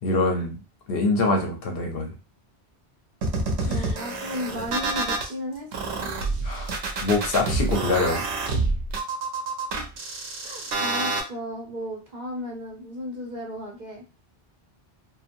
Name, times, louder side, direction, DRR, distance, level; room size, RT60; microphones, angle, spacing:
voice 1, 0.0-0.6 0.9-2.2 3.6-3.9 6.4-8.2, left 3 dB, 65° left, 2 dB, 0.9 m, -25 dB
sound 1, 3.2-5.3 5.7-11.2, right 3 dB, 85° right, 0.9 m, -27 dB
voice 2, 3.6-6.1 9.7-9.9 10.4-14.0, left 1 dB, 50° right, 0 dB, 0.7 m, -35 dB
2.8 x 2.2 x 2.5 m, 0.31 s
omnidirectional pair, 1.1 m